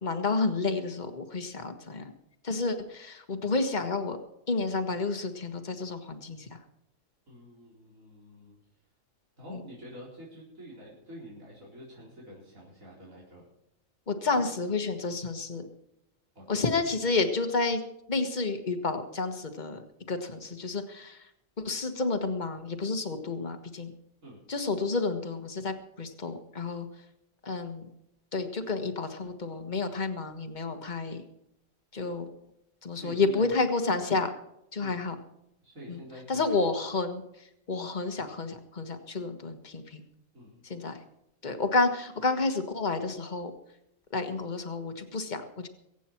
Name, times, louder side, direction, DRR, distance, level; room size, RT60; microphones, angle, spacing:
voice 1, 0.0-2.1 2.4-4.2 4.5-6.6 9.5-9.6 14.1-15.7 16.5-17.8 18.1-21.3 21.6-23.9 24.5-26.9 27.4-27.8 28.3-31.2 31.9-32.3 32.8-34.4 34.7-35.2 35.9-36.0 36.3-40.0 40.6-41.0 41.4-43.5 44.1-45.7, left 3 dB, 35° left, 6 dB, 1.6 m, -30 dB
voice 2, 7.3-8.6 9.4-13.4 14.3-14.5 16.3-16.6 24.2-24.4 32.9-33.5 34.8-35.0 35.6-36.6 40.3-40.6, right 1 dB, 75° right, -5 dB, 4.6 m, -47 dB
23.0 x 9.2 x 4.6 m, 0.81 s
omnidirectional pair, 1.4 m